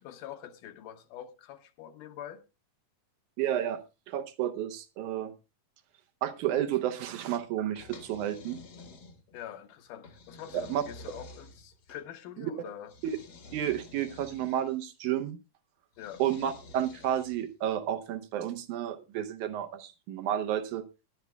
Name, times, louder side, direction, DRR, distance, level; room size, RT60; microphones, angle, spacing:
voice 1, 0.0-2.4 9.3-12.9 16.0-16.2, left 10 dB, 80° left, 2.4 m, -45 dB
voice 2, 3.4-3.8 4.1-5.3 6.2-8.6 10.5-10.8 13.0-13.2 13.5-15.4 16.2-20.8, right 11 dB, 75° right, 2.0 m, -31 dB
sound 1, 7.8-9.4 10.0-12.0 12.9-14.8 15.9-17.5, left 3 dB, 55° left, 1.1 m, -50 dB
20.0 x 10.5 x 2.3 m
omnidirectional pair, 3.9 m